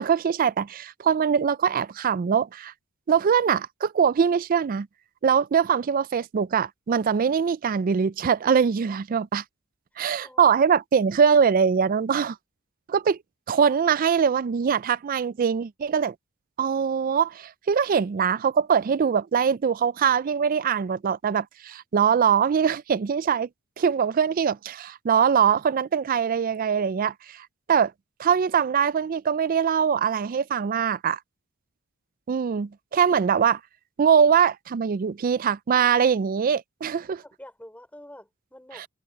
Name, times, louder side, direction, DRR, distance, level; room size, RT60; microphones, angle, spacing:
voice 1, 0.0-2.7 3.1-4.9 5.2-9.4 10.0-12.4 12.9-13.2 13.5-16.1 16.6-23.5 23.8-27.9 28.2-31.2 32.3-33.6 34.0-37.2 38.8-38.9, right 7 dB, 40° right, 0.3 m, -22 dB
voice 2, 10.2-10.6 11.0-11.1 37.2-38.9, left 1 dB, 5° left, 4.7 m, -47 dB
head